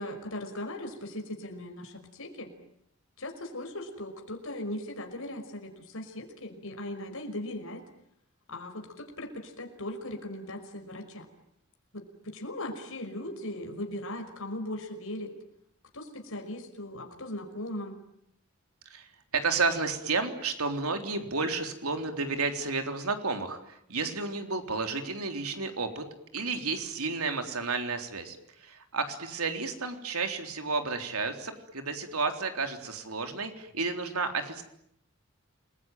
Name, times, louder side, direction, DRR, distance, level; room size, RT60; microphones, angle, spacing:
voice 1, 0.0-2.5 3.2-7.8 8.5-11.3 11.9-15.3 15.9-18.0, left 1 dB, 70° left, 4 dB, 5.6 m, -38 dB
voice 2, 18.9-26.0 26.3-34.6, right 4 dB, 80° right, 6 dB, 3.7 m, -32 dB
29.0 x 21.5 x 9.2 m, 0.76 s
head